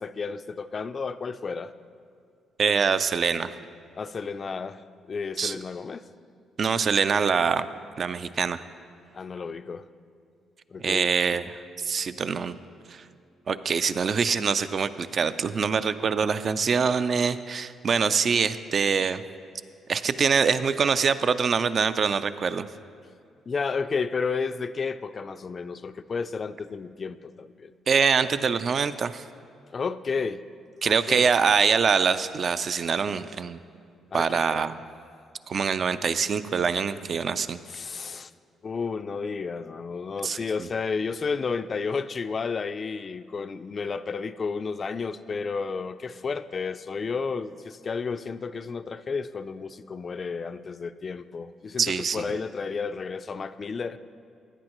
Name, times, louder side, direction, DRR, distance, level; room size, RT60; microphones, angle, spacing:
voice 1, 0.0-1.7 4.0-4.8 5.1-6.1 9.1-9.9 10.7-11.1 23.5-27.7 29.7-30.4 30.8-31.3 34.1-34.6 37.7-38.3 38.6-54.0, left 5 dB, 40° left, 12 dB, 0.4 m, -32 dB
voice 2, 2.6-3.5 5.4-5.6 6.6-7.7 8.0-8.6 10.8-11.4 11.8-12.6 12.9-13.0 13.5-19.2 19.9-22.7 27.9-29.2 30.8-33.6 34.1-34.7 35.5-37.6 40.2-40.7 51.8-52.2, right 6 dB, 50° right, 13 dB, 0.4 m, -24 dB
16.0 x 9.6 x 3.0 m, 2.4 s
cardioid pair, 90°, 0 cm